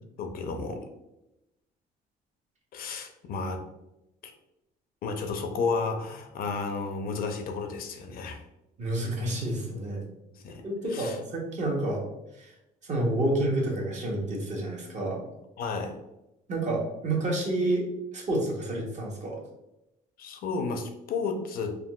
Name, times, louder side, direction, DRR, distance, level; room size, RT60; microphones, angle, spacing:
voice 1, 0.2-0.8 2.7-3.6 4.2-4.3 5.0-8.4 10.3-10.6 10.9-11.2 15.6-16.0 20.2-21.8, left 4 dB, 60° left, 6 dB, 0.5 m, -32 dB
voice 2, 8.8-10.0 10.6-12.0 12.3-12.5 12.8-15.2 16.5-17.8 18.1-19.4, right 1 dB, 45° right, -1 dB, 0.9 m, -29 dB
3.6 x 2.2 x 2.3 m, 0.91 s
cardioid pair, 110°, 17 cm